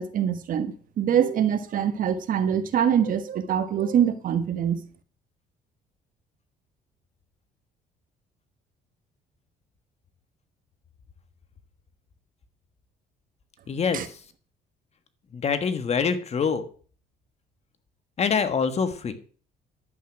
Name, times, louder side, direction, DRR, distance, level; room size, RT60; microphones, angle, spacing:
voice 1, 0.0-4.8 13.9-14.0, right 9 dB, 55° right, 10 dB, 1.4 m, -24 dB
voice 2, 13.7-14.2 15.3-16.6 18.2-19.2, left 6 dB, 40° left, 11 dB, 1.5 m, -25 dB
11.0 x 8.4 x 6.1 m, 0.43 s
cardioid pair, 110°, 17 cm